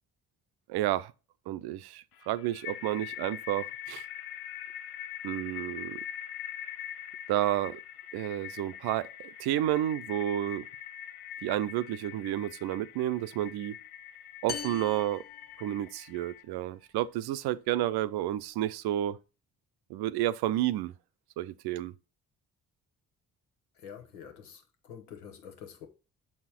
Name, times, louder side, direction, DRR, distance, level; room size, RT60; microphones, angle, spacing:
voice 1, 0.7-1.1 1.5-4.0 5.2-6.0 7.3-7.8 8.1-10.7 11.4-13.8 14.4-15.2 15.6-19.2 19.9-20.9 21.4-21.9, right 13 dB, 60° right, 0.6 m, -31 dB
sound 1, 2.1-16.4, left 10 dB, 65° left, 0.7 m, -43 dB
sound 2, 14.5-16.2, left 8 dB, 25° left, 0.4 m, -41 dB
voice 2, 23.7-25.9, left 8 dB, 90° left, 1.1 m, -47 dB
7.2 x 4.2 x 4.2 m
hypercardioid pair, 45°, 43 cm